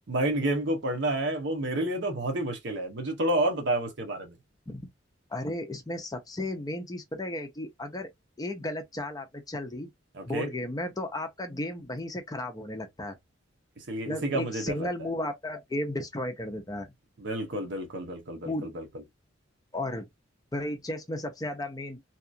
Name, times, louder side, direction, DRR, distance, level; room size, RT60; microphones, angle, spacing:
voice 1, 0.1-4.3 10.1-10.5 13.9-14.9 17.2-18.8, right 1 dB, 65° right, 0.8 m, -29 dB
voice 2, 5.3-8.1 8.4-9.9 10.3-13.2 14.0-16.9 18.4-18.7 19.7-20.1 20.5-22.0, left 1 dB, 20° left, 0.5 m, -34 dB
2.8 x 2.3 x 2.5 m
head